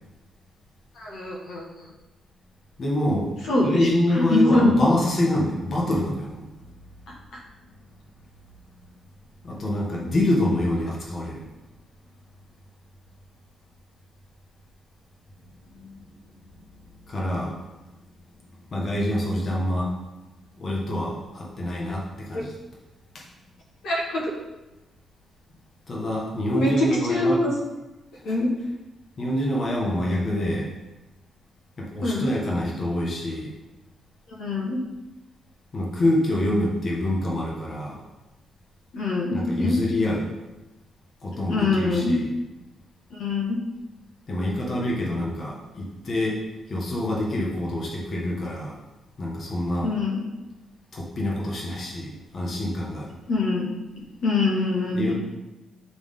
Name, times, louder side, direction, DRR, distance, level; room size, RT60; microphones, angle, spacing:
voice 1, 0.9-1.9 3.5-3.9 4.1-4.7 22.3-22.4 23.8-24.3 26.5-27.5 28.2-28.5 32.0-32.3 34.4-34.8 38.9-39.8 41.5-42.2 43.1-43.6 49.8-50.3 53.3-53.7 54.2-55.1, left 2 dB, 80° left, -3 dB, 1.5 m, -24 dB
voice 2, 2.8-3.3 3.6-6.4 9.4-11.4 15.7-16.0 17.0-17.6 18.7-19.9 20.6-22.5 23.1-23.2 25.9-27.4 28.3-28.4 29.2-30.7 31.8-33.5 35.7-38.0 39.3-40.3 41.2-42.3 44.3-46.4 46.7-48.8 49.2-49.9 50.9-53.1 54.9-55.1, left 1 dB, 45° left, -3 dB, 1.4 m, -26 dB
8.9 x 3.6 x 3.7 m, 1.1 s
cardioid pair, 110°, 0 cm